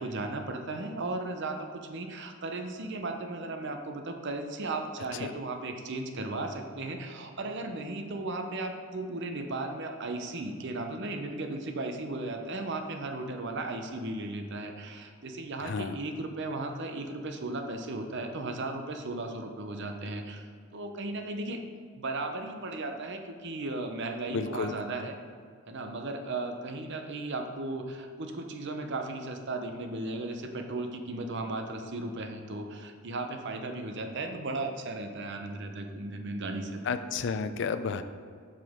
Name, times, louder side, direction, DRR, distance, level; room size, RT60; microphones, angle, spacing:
voice 1, 0.0-21.6 22.0-25.1 25.7-36.8, right 2 dB, 55° right, 5 dB, 0.7 m, -36 dB
voice 2, 15.6-16.0 24.3-24.7 36.8-38.0, left 5 dB, 55° left, 10 dB, 0.4 m, -31 dB
7.8 x 6.0 x 3.6 m, 2.1 s
head